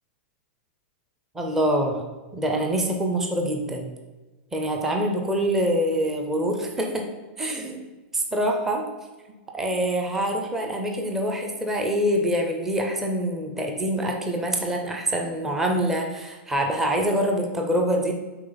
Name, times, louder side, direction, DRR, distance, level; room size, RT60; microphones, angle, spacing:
voice 1, 1.3-2.0 2.3-3.9 4.5-7.1 7.4-7.8 8.1-8.8 9.5-18.1, right 1 dB, 5° right, 2 dB, 0.5 m, -25 dB
8.9 x 3.7 x 3.9 m, 1.2 s
supercardioid pair, 175°, 6 cm